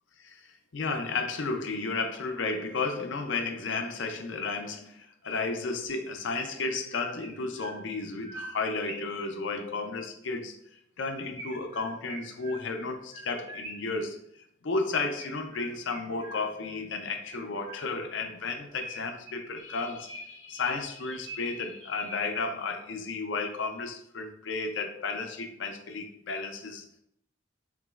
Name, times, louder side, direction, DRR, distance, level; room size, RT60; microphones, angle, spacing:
voice 1, 0.7-10.6 11.0-14.2 14.6-26.8, left 3 dB, 75° left, 0.6 m, -33 dB
Chirp tweet, 6.7-9.2 11.3-14.0 15.2-16.7 17.3-18.2 18.8-20.5 21.0-22.5, right 2 dB, 25° right, 1.0 m, -46 dB
7.2 x 3.0 x 2.4 m
head